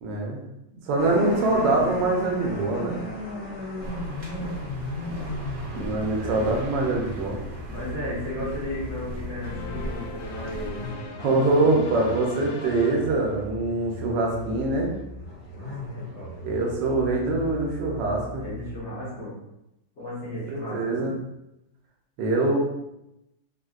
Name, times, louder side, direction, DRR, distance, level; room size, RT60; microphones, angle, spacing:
voice 1, 0.0-0.4 0.7-3.0 5.7-7.4 11.2-14.9 16.4-18.5 20.5-21.2 22.2-22.6, right 2 dB, 80° right, 0 dB, 1.3 m, -24 dB
sound 1, 1.0-18.8, left 1 dB, 65° left, 1.8 m, -37 dB
sound 2, 3.8-10.9, right 1 dB, 55° right, 0.8 m, -38 dB
voice 2, 7.7-10.9 11.6-12.1 15.5-16.5 18.3-19.4 20.0-21.1, left 1 dB, 50° left, -8 dB, 0.9 m, -35 dB
sound 3, 9.4-13.9, left 3 dB, 90° left, 1.3 m, -40 dB
3.9 x 2.1 x 2.3 m, 0.89 s
omnidirectional pair, 2.0 m